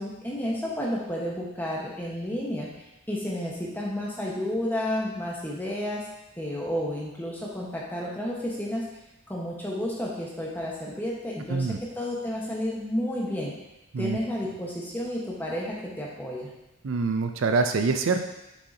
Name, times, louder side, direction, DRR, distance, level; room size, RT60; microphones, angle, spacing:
voice 1, 0.0-2.7 3.1-6.1 6.4-8.9 9.3-13.5 14.0-16.5, left 1 dB, 10° left, -4 dB, 1.1 m, -31 dB
voice 2, 16.8-18.2, right 4 dB, 75° right, 6 dB, 0.5 m, -25 dB
6.5 x 6.3 x 2.8 m, 0.93 s
head